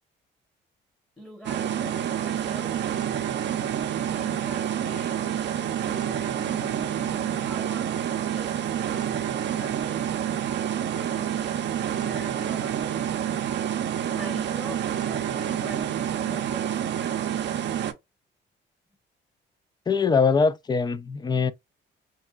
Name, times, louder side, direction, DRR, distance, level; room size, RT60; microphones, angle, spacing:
voice 1, 1.2-2.8 4.1-10.0 10.7-13.1 14.0-17.4, equal, 5° left, 0.9 m, -44 dB
sound 1, 1.4-17.9, right 10 dB, 60° right, 0.5 m, -28 dB
voice 2, 19.9-21.5, left 5 dB, 20° left, 0.3 m, -22 dB
3.9 x 2.2 x 2.2 m
cardioid pair, 90°, 20 cm